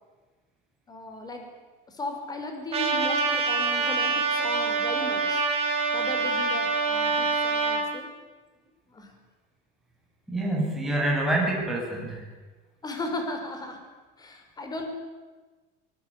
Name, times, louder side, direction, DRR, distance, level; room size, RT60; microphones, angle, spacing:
voice 1, 0.9-1.5 1.9-5.5 5.9-8.1 8.9-9.1 12.8-13.8 14.2-14.9, left 2 dB, 20° left, 5 dB, 5.3 m, -36 dB
Trumpet, 2.7-7.8, right 4 dB, 30° right, 5.6 m, -25 dB
voice 2, 10.3-12.3, right 1 dB, ahead, -2 dB, 8.0 m, -26 dB
25.0 x 20.5 x 9.1 m, 1.3 s
cardioid pair, 150°, 20 cm